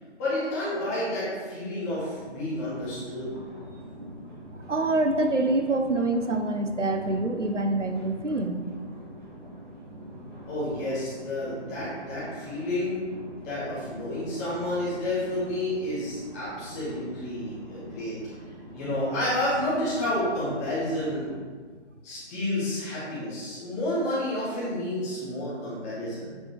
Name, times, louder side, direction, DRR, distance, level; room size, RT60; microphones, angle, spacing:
voice 1, 0.2-3.3 10.5-13.0 13.4-18.2 18.7-21.3 22.0-26.4, left 1 dB, 15° left, -10 dB, 2.0 m, -30 dB
sound 1, 2.1-21.4, equal, 45° right, 1.9 m, -44 dB
voice 2, 4.7-8.6, right 2 dB, 85° right, 5 dB, 1.0 m, -25 dB
8.4 x 5.8 x 3.2 m, 1.5 s
figure-of-eight pair, 155°, 35 cm